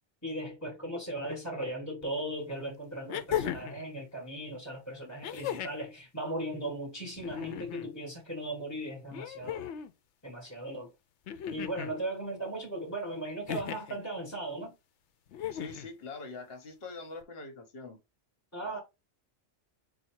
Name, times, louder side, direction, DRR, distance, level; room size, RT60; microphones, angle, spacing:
voice 1, 0.2-9.6 10.2-10.9 11.5-14.8 18.5-18.8, right 1 dB, 15° left, 1.1 m, -37 dB
sound 1, 2.0-2.1 3.1-3.8 5.2-5.9 7.2-7.9 9.1-9.9 11.3-12.0 13.5-14.0 15.3-15.9 17.2-17.3, left 10 dB, 80° left, 0.9 m, -36 dB
voice 2, 15.5-18.0, left 3 dB, 60° left, 1.2 m, -43 dB
4.1 x 2.3 x 4.4 m
omnidirectional pair, 1.2 m